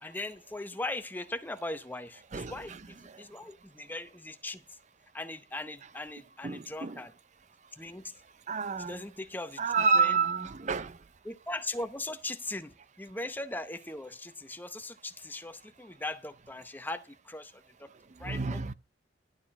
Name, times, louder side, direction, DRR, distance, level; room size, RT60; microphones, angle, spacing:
voice 1, 0.0-4.8 5.1-7.1 7.7-8.1 8.8-9.6 9.9-10.1 11.2-17.9 18.2-18.7, left 2 dB, 10° left, 0.8 m, -39 dB
voice 2, 2.3-2.8 6.4-7.0 8.5-9.0 9.6-10.9 18.2-18.7, right 5 dB, 40° right, 0.6 m, -29 dB
11.5 x 6.5 x 6.1 m
head